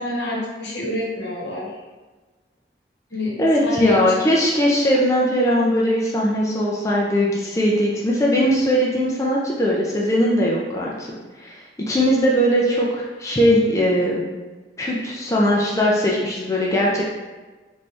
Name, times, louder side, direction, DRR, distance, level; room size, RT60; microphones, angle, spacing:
voice 1, 0.0-1.7 3.1-3.3 3.6-4.0, left 1 dB, 80° left, -3 dB, 0.9 m, -27 dB
voice 2, 3.4-11.1 11.4-14.2 14.8-17.0, equal, 15° left, -4 dB, 0.4 m, -20 dB
3.2 x 2.6 x 3.4 m, 1.2 s
head